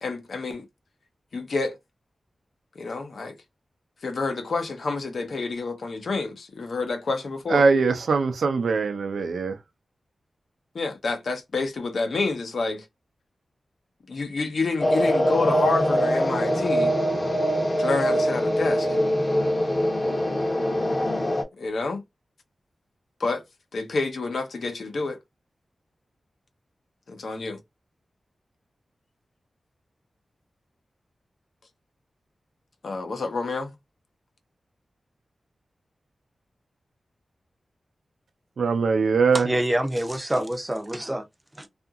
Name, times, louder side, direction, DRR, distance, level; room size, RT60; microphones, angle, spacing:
voice 1, 0.0-0.7 1.3-1.8 2.8-3.4 4.0-7.6 10.7-12.9 14.1-16.9 17.8-19.0 21.6-22.0 23.2-23.4 23.7-25.2 27.1-27.6 32.8-33.7, left 3 dB, 65° left, 0.6 m, -28 dB
voice 2, 7.5-9.6 38.6-39.5, right 4 dB, 90° right, 0.5 m, -22 dB
sound 1, 14.8-21.4, equal, 25° left, 0.7 m, -23 dB
voice 3, 39.3-41.3 41.6-41.7, right 1 dB, 15° right, 0.5 m, -26 dB
2.8 x 2.5 x 2.4 m
wide cardioid pair, 115°, 0 cm